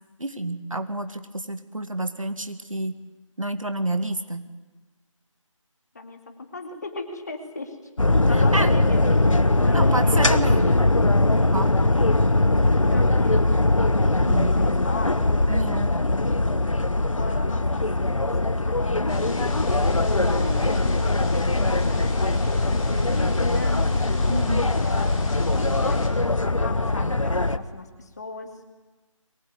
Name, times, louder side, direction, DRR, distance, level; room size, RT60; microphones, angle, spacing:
voice 1, 0.2-2.9 3.4-4.5 8.3-8.7 9.7-10.6 11.5-11.7 14.2-14.5 15.5-15.9 24.3-24.7, right 1 dB, 75° right, 8 dB, 2.3 m, -29 dB
voice 2, 5.9-7.8 8.3-10.7 12.9-13.7 14.6-15.2 17.2-19.7 20.2-23.9 24.8-25.2 25.6-28.5, left 3 dB, 30° left, 5 dB, 2.4 m, -37 dB
sound 1, 8.0-27.6, left 2 dB, 70° left, 1.3 m, -21 dB
sound 2, 19.1-26.1, left 3 dB, 10° left, 1.4 m, -40 dB
23.0 x 19.5 x 9.5 m, 1.2 s
figure-of-eight pair, 165°, 17 cm